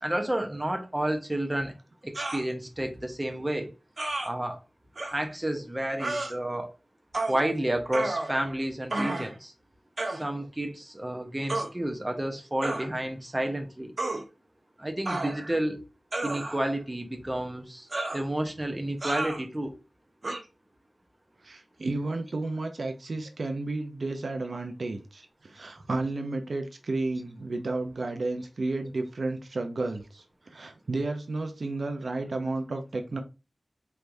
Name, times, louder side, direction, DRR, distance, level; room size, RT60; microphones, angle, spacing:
voice 1, 0.0-1.7 2.0-3.7 4.2-4.6 5.1-6.7 7.3-9.5 10.1-13.9 14.8-15.8 16.2-17.9 18.1-19.7, right 1 dB, 20° right, 0.9 m, -30 dB
sound 1, 2.1-2.4 4.0-4.3 5.0-5.1 6.0-6.3 7.1-7.4 7.9-8.5 8.9-9.3 10.0-10.2 11.5-11.7 12.6-12.9 14.0-14.2 15.1-15.6 16.1-16.7 17.9-18.2 19.0-19.4 20.2-20.4, right 2 dB, 55° right, 1.1 m, -31 dB
voice 2, 21.4-33.2, right 2 dB, 75° right, 0.6 m, -32 dB
4.6 x 3.2 x 2.6 m
cardioid pair, 45°, 0 cm